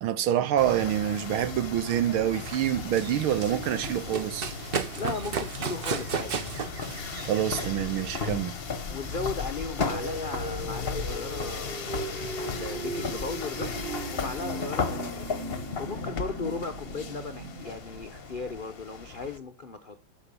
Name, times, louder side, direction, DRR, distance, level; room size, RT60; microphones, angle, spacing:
voice 1, 0.0-4.5 7.3-8.6, right 11 dB, 90° right, 1.7 m, -26 dB
sound 1, 0.6-19.4, left 5 dB, 40° left, 1.0 m, -35 dB
Run, 2.3-8.3, right 6 dB, 70° right, 0.5 m, -35 dB
voice 2, 5.0-6.3 8.9-11.9 12.4-13.8 14.1-15.3 15.8-20.0, left 4 dB, 70° left, 0.4 m, -36 dB
sound 2, 9.6-18.5, right 3 dB, 35° right, 1.1 m, -39 dB
13.0 x 5.9 x 6.8 m
omnidirectional pair, 2.3 m